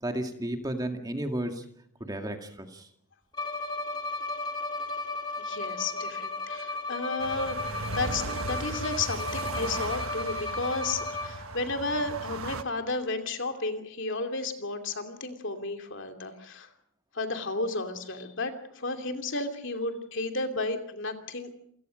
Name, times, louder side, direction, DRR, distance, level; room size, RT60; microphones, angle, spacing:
voice 1, 0.0-1.6 2.0-2.9, right 1 dB, 15° right, 5 dB, 2.1 m, -33 dB
Bowed string instrument, 3.3-11.6, left 3 dB, 20° left, 2.4 m, -35 dB
voice 2, 5.4-16.7 17.1-21.5, left 3 dB, 55° left, 6 dB, 2.7 m, -33 dB
sound 1, 7.2-12.6, right 3 dB, 70° right, 1.3 m, -37 dB
28.5 x 17.0 x 6.4 m, 0.70 s
head